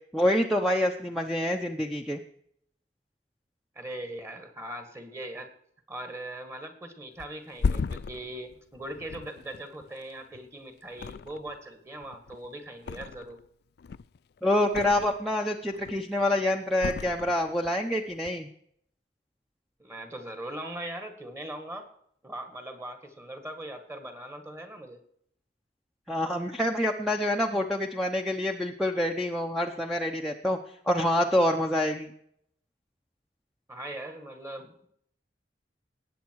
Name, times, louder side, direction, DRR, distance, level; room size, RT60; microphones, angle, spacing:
voice 1, 0.1-2.2 14.4-18.5 26.1-30.6 30.9-32.1, left 1 dB, ahead, 2 dB, 0.8 m, -26 dB
voice 2, 3.8-5.5 5.9-13.4 19.8-21.9 22.2-25.0 33.7-34.9, right 1 dB, 15° right, 7 dB, 2.0 m, -40 dB
Thump thud, 7.2-10.5 10.9-11.7 12.0-13.5 13.8-15.3 15.7-16.2 16.8-17.8 18.1-18.3, left 5 dB, 65° left, 0.4 m, -35 dB
19.0 x 8.6 x 4.7 m, 0.67 s
head